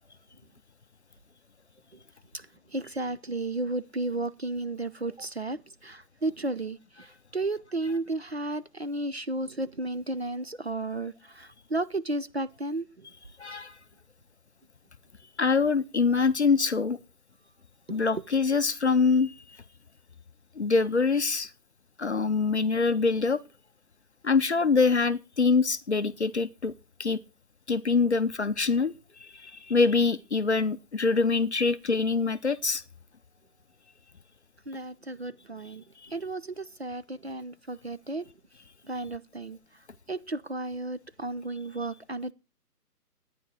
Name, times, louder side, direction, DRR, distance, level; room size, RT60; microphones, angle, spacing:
voice 1, 2.3-13.1 17.9-18.2 34.7-38.3 38.8-39.6 40.1-42.3, right 2 dB, 45° right, 0.5 m, -33 dB
voice 2, 13.4-13.8 15.4-17.0 17.9-19.6 20.6-21.5 22.0-23.4 24.2-26.7 27.0-27.2 27.7-28.9 29.2-32.8 36.0-36.1, left 4 dB, 45° left, 0.5 m, -24 dB
11.5 x 9.8 x 4.6 m
hypercardioid pair, 165°, 48 cm